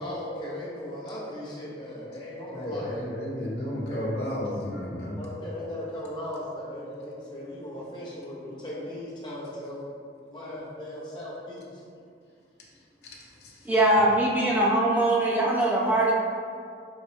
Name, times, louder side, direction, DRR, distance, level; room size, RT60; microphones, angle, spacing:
voice 1, 0.0-3.0 3.6-4.1 5.1-9.9 10.3-11.8, left 1 dB, 25° left, -7 dB, 0.9 m, -37 dB
voice 2, 2.5-5.2 13.0-13.7, left 1 dB, 60° left, -3 dB, 0.8 m, -33 dB
voice 3, 13.6-16.1, right 1 dB, 10° right, -5 dB, 0.5 m, -22 dB
4.0 x 3.4 x 3.4 m, 2.3 s
head